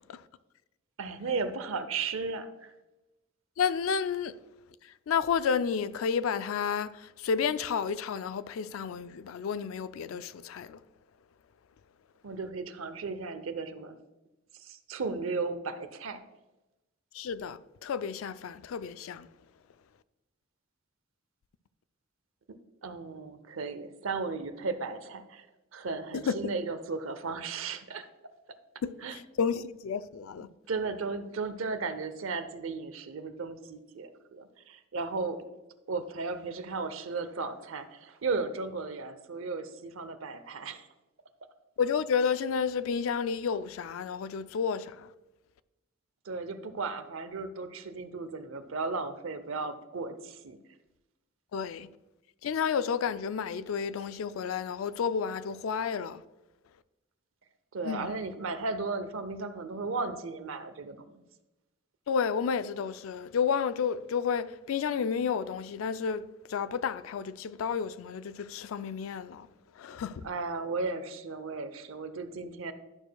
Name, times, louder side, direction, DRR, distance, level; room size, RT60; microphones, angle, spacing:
voice 1, 1.0-2.7 12.2-14.0 14.5-16.2 22.5-25.5 25.7-28.1 29.0-29.2 30.7-35.4 35.9-40.9 46.3-50.6 57.7-61.2 70.2-72.7, right 4 dB, 80° right, 0.7 m, -35 dB
voice 2, 3.6-4.4 4.8-10.8 17.1-19.3 26.1-26.4 28.8-30.5 41.8-45.1 51.5-51.9 52.4-56.2 57.8-58.1 62.1-69.5 69.8-70.3, left 6 dB, 85° left, 0.4 m, -31 dB
11.5 x 6.4 x 2.2 m
head